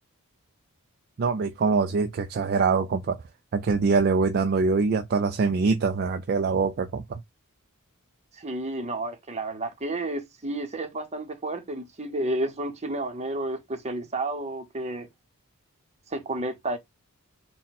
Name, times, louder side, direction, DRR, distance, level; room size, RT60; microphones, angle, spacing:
voice 1, 1.2-3.2 3.5-7.2, right 4 dB, 45° right, 0.3 m, -24 dB
voice 2, 8.3-15.1 16.1-16.8, right 2 dB, 30° right, 0.9 m, -31 dB
3.9 x 2.2 x 4.1 m
head